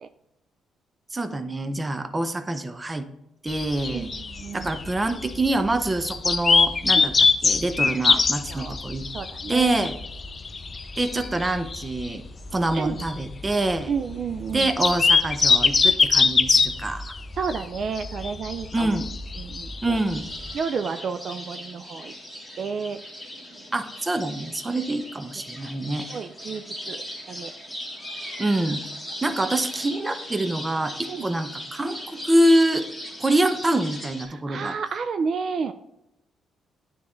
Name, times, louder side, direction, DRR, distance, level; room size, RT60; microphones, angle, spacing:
voice 1, 1.1-3.1 3.4-4.1 4.5-9.1 9.5-9.9 11.0-12.2 12.5-13.9 14.5-17.1 18.7-19.1 19.8-20.3 23.7-26.1 28.4-28.8 29.2-32.8 33.2-34.8, right 1 dB, 20° right, 9 dB, 0.6 m, -25 dB
sound 1, 3.5-20.6, left 4 dB, 35° left, 0.4 m, -23 dB
voice 2, 3.9-4.7 6.9-7.1 8.0-8.1 8.5-8.8 9.1-9.8 12.7-13.0 13.9-14.7 17.3-19.0 19.4-20.0 20.5-22.1 22.6-23.0 25.6-25.7 26.1-27.0 27.3-27.5 31.1-31.3 34.3-35.7, right 5 dB, 55° right, 9 dB, 0.3 m, -31 dB
sound 2, 19.9-34.3, equal, ahead, 1.7 m, -38 dB
9.3 x 3.6 x 3.1 m, 0.85 s
cardioid pair, 90°, 0 cm